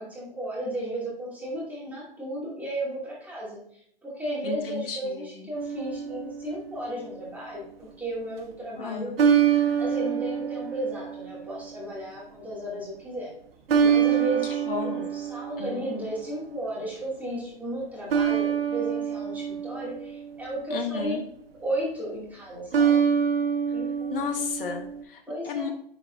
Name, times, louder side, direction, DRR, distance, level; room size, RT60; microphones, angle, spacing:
voice 1, 0.0-3.6 4.0-13.3 13.8-21.1 21.6-23.0 23.7-24.2 25.3-25.7, right 1 dB, 5° right, -6 dB, 2.5 m, -34 dB
voice 2, 4.4-5.5 8.8-9.1 14.5-15.1 15.6-15.9 20.7-21.2 24.1-25.7, left 6 dB, 65° left, 3 dB, 1.4 m, -33 dB
sound 1, 5.5-6.9 9.2-11.7 13.7-16.3 18.1-20.6 22.7-25.0, right 8 dB, 75° right, 1.1 m, -26 dB
10.5 x 4.7 x 2.6 m, 0.65 s
hypercardioid pair, 140°, 30 cm